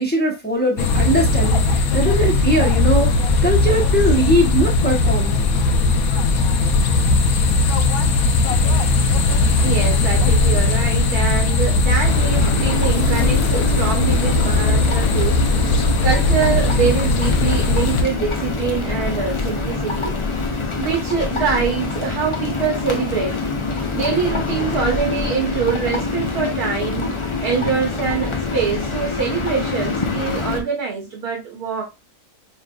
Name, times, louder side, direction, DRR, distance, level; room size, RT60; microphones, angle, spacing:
voice 1, 0.0-3.1 3.4-5.4, right 1 dB, 10° left, 0.8 m, -20 dB
sound 1, 0.8-18.0, left 3 dB, 75° left, 1.1 m, -18 dB
voice 2, 9.6-20.2 20.8-23.4 23.9-27.1 27.4-31.8, right 6 dB, 90° right, 1.5 m, -24 dB
sound 2, 12.0-30.6, left 3 dB, 45° left, 0.3 m, -25 dB
5.6 x 2.9 x 2.3 m
omnidirectional pair, 1.6 m